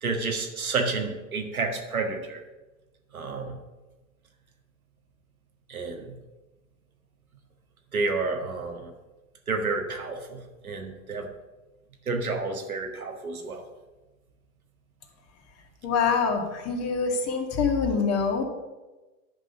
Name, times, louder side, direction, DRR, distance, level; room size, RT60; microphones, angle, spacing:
voice 1, 0.0-2.4 3.1-3.6 5.7-6.1 7.9-8.9 9.5-11.3 12.0-13.6, right 3 dB, 85° right, 3 dB, 1.7 m, -30 dB
voice 2, 15.8-18.4, left 5 dB, 35° left, 3 dB, 2.1 m, -25 dB
10.0 x 5.4 x 6.7 m, 1.1 s
figure-of-eight pair, 90°, 42 cm